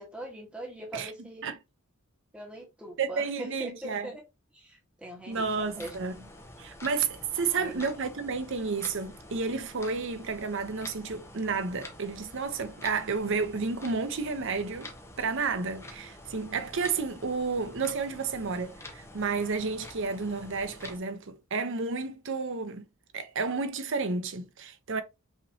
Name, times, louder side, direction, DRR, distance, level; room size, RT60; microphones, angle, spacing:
voice 1, 0.0-1.4 2.3-4.2 4.5-5.9 7.5-7.9, right 1 dB, 5° right, 1.5 m, -42 dB
voice 2, 3.0-4.1 5.3-6.1 6.6-14.9 15.2-22.8 23.1-25.0, right 4 dB, 65° right, 0.8 m, -31 dB
sound 1, 5.3-21.0, left 1 dB, 15° left, 1.0 m, -47 dB
5.8 x 3.0 x 2.8 m
head